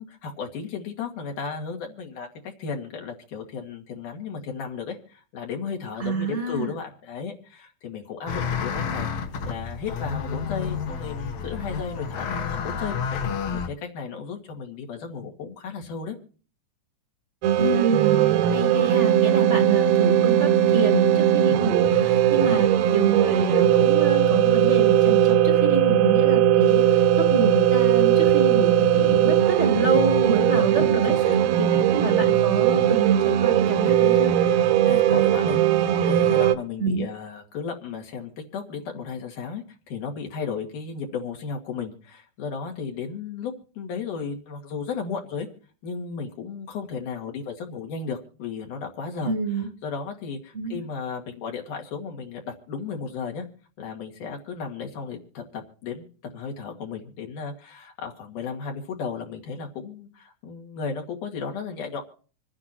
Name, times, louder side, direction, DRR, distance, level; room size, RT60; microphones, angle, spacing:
voice 1, 0.0-9.1 9.4-16.2 21.5-21.7 22.3-22.7 30.8-31.4 31.7-31.9 34.9-45.5 45.8-53.5 53.8-56.1 56.3-62.0, left 5 dB, 80° left, 2 dB, 3.7 m, -34 dB
voice 2, 6.0-6.7 17.6-31.1 31.9-34.3 36.8-37.1 49.2-49.7 50.5-50.8, right 3 dB, 45° right, 6 dB, 0.9 m, -27 dB
sound 1, 8.3-13.7, left 6 dB, 60° left, 1.9 m, -30 dB
sound 2, 17.4-36.5, right 11 dB, 70° right, 1.9 m, -19 dB
27.0 x 9.9 x 2.9 m, 0.41 s
omnidirectional pair, 3.6 m